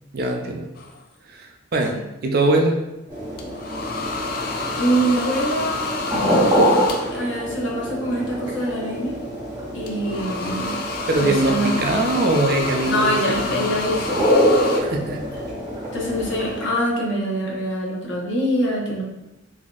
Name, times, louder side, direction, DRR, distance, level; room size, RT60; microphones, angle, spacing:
voice 1, 0.1-0.7 1.3-2.0 2.2-2.8 11.1-13.7 14.8-15.2, right 2 dB, 50° right, 3 dB, 0.4 m, -22 dB
sound 1, 0.8-1.0 3.4-7.4 9.9-14.8, left 3 dB, 45° left, 0.4 m, -29 dB
sound 2, 3.1-16.7, equal, 20° right, 1.0 m, -25 dB
voice 2, 4.7-6.0 6.3-6.7 7.1-9.2 9.7-10.8 11.2-11.7 12.9-14.3 15.9-19.0, right 1 dB, 70° left, -3 dB, 0.9 m, -24 dB
3.9 x 2.7 x 2.4 m, 0.98 s
head